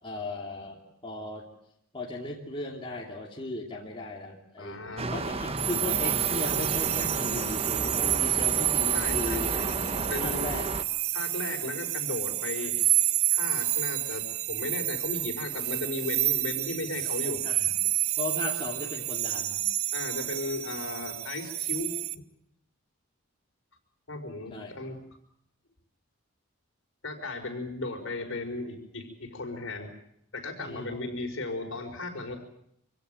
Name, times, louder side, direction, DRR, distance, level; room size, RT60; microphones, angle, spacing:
voice 1, 0.0-1.4 1.9-9.5 10.2-10.7 17.4-17.7 18.2-19.6 24.5-24.7 30.6-30.9, left 2 dB, 25° left, -2 dB, 2.8 m, -37 dB
voice 2, 4.6-5.1 8.9-9.6 10.1-10.5 11.1-12.7 13.3-17.4 19.9-21.9 24.1-25.0 27.0-29.9 30.3-32.4, left 2 dB, 65° left, 3 dB, 5.2 m, -36 dB
sound 1, 5.0-10.8, right 2 dB, 25° right, 1.1 m, -32 dB
sound 2, 5.6-22.1, right 15 dB, 80° right, 0.9 m, -29 dB
25.5 x 17.0 x 9.3 m, 0.74 s
head